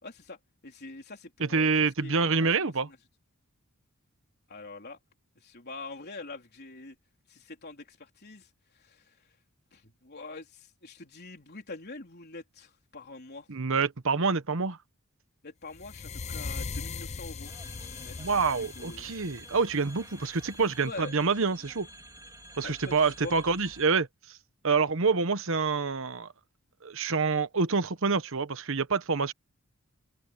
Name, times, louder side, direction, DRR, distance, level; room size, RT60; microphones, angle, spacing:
voice 1, 0.0-0.4 0.6-1.7 2.0-2.3 2.6-3.0 4.5-5.0 5.4-7.0 7.3-8.5 8.7-9.1 9.7-13.5 15.4-17.5 18.0-18.1 18.6-19.1 20.8-21.1 22.6-23.4, left 3 dB, 50° left, 4.0 m, -44 dB
voice 2, 1.4-2.9 13.5-14.8 18.2-21.9 22.6-24.1 24.6-26.3 26.8-29.3, right 4 dB, 65° right, 1.1 m, -27 dB
sound 1, 15.7-20.8, left 4 dB, 30° left, 0.5 m, -40 dB
sound 2, 17.4-23.8, right 1 dB, 15° right, 2.5 m, -49 dB
open air
head